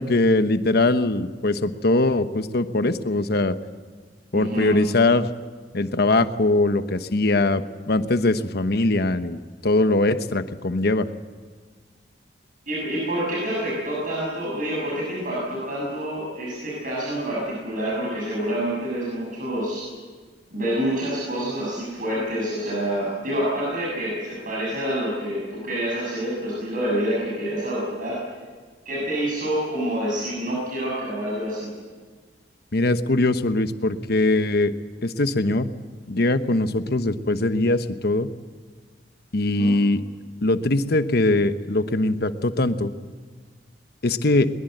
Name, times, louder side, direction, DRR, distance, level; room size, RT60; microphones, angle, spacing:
voice 1, 0.0-3.6 4.3-5.3 5.7-11.1 32.7-34.7 35.0-35.7 36.1-38.3 39.3-40.0 40.4-42.9 44.0-44.5, left 2 dB, 65° left, 10 dB, 1.1 m, -21 dB
voice 2, 4.3-4.7 12.7-19.9 20.5-28.2 28.9-31.7 39.6-39.7, right 1 dB, 50° right, -5 dB, 7.1 m, -27 dB
21.5 x 21.5 x 7.9 m, 1.5 s
head